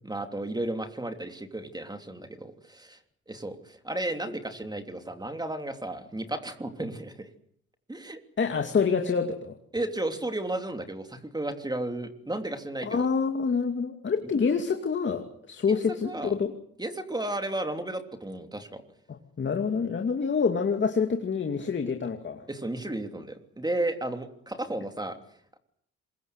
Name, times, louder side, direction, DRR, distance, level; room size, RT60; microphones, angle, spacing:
voice 1, 0.0-3.0 3.3-7.3 7.9-8.2 9.7-13.1 15.7-16.3 16.8-18.8 22.5-25.2, right 1 dB, 15° right, 6 dB, 3.1 m, -33 dB
voice 2, 8.4-9.6 12.8-16.5 19.1-22.4, left 5 dB, 40° left, 5 dB, 2.5 m, -27 dB
24.5 x 22.0 x 8.3 m, 0.70 s
cardioid pair, 90°, 30 cm